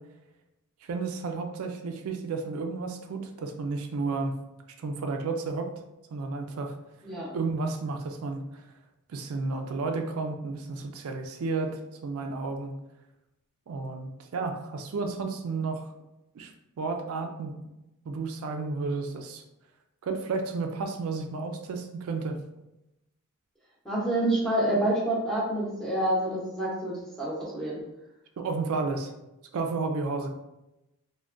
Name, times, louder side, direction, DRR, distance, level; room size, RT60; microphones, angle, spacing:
voice 1, 0.8-4.4 4.8-5.7 6.1-6.7 7.3-8.6 9.1-12.7 13.7-15.9 16.3-16.5 16.8-17.5 18.1-19.4 20.0-22.4 28.4-29.1 29.5-30.3, right 3 dB, 80° right, 4 dB, 0.4 m, -32 dB
voice 2, 23.8-27.8, right 1 dB, 5° left, -6 dB, 0.8 m, -27 dB
3.4 x 2.2 x 2.5 m, 0.93 s
head